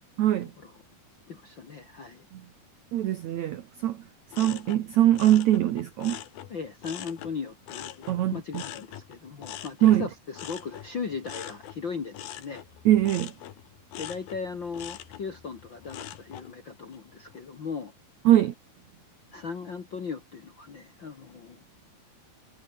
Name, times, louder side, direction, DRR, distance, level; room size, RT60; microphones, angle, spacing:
voice 1, 0.2-0.5 2.3-2.4 2.9-4.0 4.4-6.2 8.1-8.6 9.8-10.1 12.8-13.3 18.2-18.5, right 13 dB, 75° right, 1.7 m, -22 dB
voice 2, 1.3-2.3 6.5-12.6 14.0-17.9 19.3-21.6, left 5 dB, 50° left, 1.5 m, -37 dB
sound 1, 4.3-7.3 7.7-16.5 16.9-17.4, left 12 dB, 70° left, 3.3 m, -43 dB
omnidirectional pair, 4.7 m